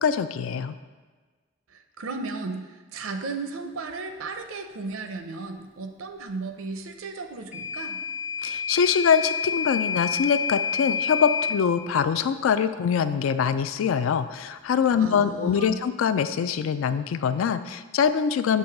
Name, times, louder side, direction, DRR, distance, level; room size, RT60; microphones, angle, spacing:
voice 1, 0.0-0.7 8.4-18.6, left 7 dB, 75° left, 11 dB, 0.3 m, -24 dB
voice 2, 1.7-8.0 15.0-15.8, right 3 dB, 80° right, 6 dB, 0.6 m, -35 dB
Microwave oven / Alarm, 7.5-11.6, left 6 dB, 30° left, 0.7 m, -28 dB
6.8 x 3.1 x 5.8 m, 1.4 s
head